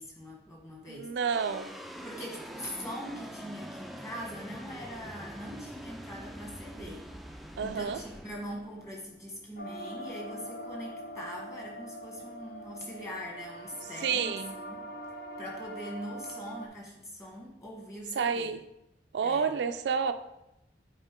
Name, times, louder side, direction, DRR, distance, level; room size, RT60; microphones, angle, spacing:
voice 1, 0.0-1.1 2.0-7.0 7.6-14.8 15.4-18.5 19.2-19.5, equal, 15° left, -2 dB, 1.6 m, -42 dB
voice 2, 0.9-1.7 7.6-8.0 14.0-14.5 18.2-18.6 19.1-20.1, right 6 dB, 75° right, 9 dB, 0.4 m, -29 dB
sound 1, 1.2-9.7, equal, ahead, 0.3 m, -45 dB
sound 2, 9.6-16.7, equal, 55° left, 0.7 m, -43 dB
8.0 x 4.4 x 3.6 m, 0.88 s
head